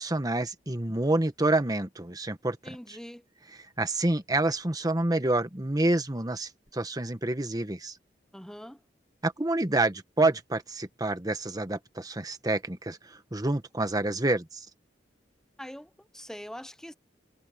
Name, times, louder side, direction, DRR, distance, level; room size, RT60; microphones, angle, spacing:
voice 1, 0.0-2.6 2.9-3.0 3.8-7.9 9.2-14.7, right 2 dB, 20° right, 1.3 m, -28 dB
voice 2, 2.6-3.3 8.3-8.8 15.6-16.9, equal, 5° left, 0.9 m, -43 dB
head